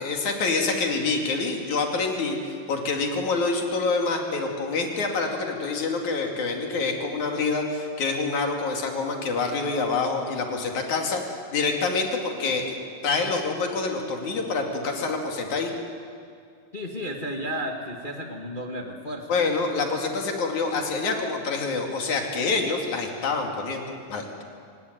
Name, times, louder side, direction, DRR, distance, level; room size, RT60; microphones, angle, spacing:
voice 1, 0.0-12.8 13.0-15.7 19.3-24.2, left 4 dB, 60° left, 2 dB, 3.7 m, -26 dB
voice 2, 16.7-19.4, equal, 35° left, 2 dB, 0.7 m, -33 dB
26.0 x 17.0 x 9.5 m, 2.3 s
omnidirectional pair, 4.1 m